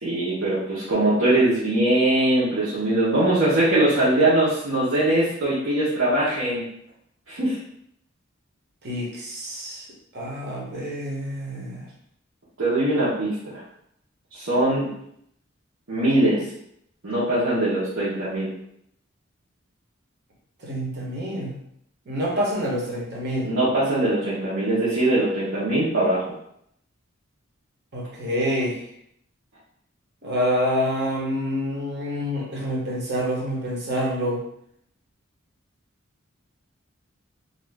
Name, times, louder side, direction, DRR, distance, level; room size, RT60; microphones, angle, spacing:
voice 1, 0.0-6.7 7.3-7.6 12.6-13.6 14.3-14.9 15.9-16.5 17.0-18.5 23.4-26.2, right 1 dB, 80° right, -9 dB, 1.0 m, -21 dB
voice 2, 8.8-9.9 10.1-11.9 20.6-21.5 22.1-23.5 27.9-28.8 30.2-34.4, equal, 55° right, -3 dB, 0.9 m, -27 dB
2.6 x 2.4 x 3.4 m, 0.72 s
head